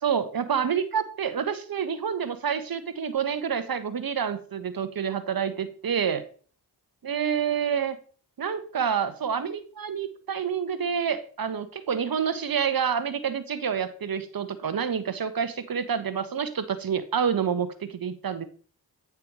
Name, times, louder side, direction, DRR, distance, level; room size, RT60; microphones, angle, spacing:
voice 1, 0.0-6.2 7.0-8.0 8.4-18.4, right 7 dB, 50° right, 12 dB, 1.2 m, -28 dB
8.7 x 4.8 x 4.7 m, 0.42 s
supercardioid pair, 40°, 45 cm